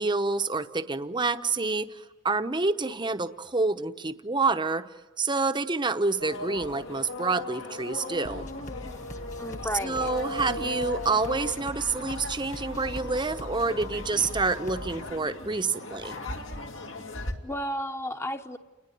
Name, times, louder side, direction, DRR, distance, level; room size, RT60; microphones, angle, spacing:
voice 1, 0.0-4.8 5.2-8.5 9.8-16.2, right 3 dB, 25° right, 9 dB, 0.9 m, -28 dB
sound 1, 6.2-17.3, left 2 dB, 70° left, 2.5 m, -38 dB
sound 2, 8.2-15.1, equal, 40° left, 1.8 m, -42 dB
voice 2, 9.4-10.1 17.4-18.6, equal, 15° left, 8 dB, 1.0 m, -33 dB
29.5 x 20.5 x 9.3 m, 1.2 s
head